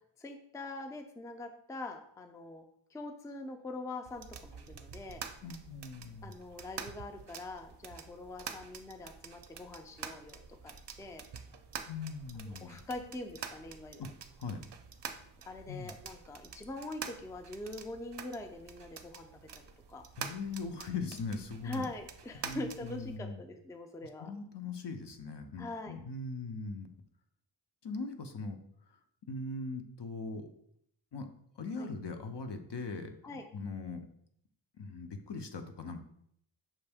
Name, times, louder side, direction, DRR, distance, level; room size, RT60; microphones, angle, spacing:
voice 1, 0.2-2.7 2.9-5.2 6.2-11.2 12.5-14.0 15.4-19.6 19.9-20.1 21.6-24.3 25.6-26.0 31.8-31.9 33.2-33.4, left 2 dB, 10° left, 6 dB, 0.4 m, -43 dB
sound 1, 4.1-23.2, right 6 dB, 60° right, 0.5 m, -47 dB
voice 2, 5.4-6.3 11.9-12.8 14.0-14.1 14.4-14.6 15.7-15.9 20.2-21.9 22.4-23.4 24.2-26.9 27.8-28.6 28.9-30.5 31.1-31.3 31.6-34.1 34.8-36.0, left 3 dB, 60° left, 6 dB, 0.6 m, -40 dB
5.7 x 2.6 x 3.4 m, 0.69 s
wide cardioid pair, 50°, 47 cm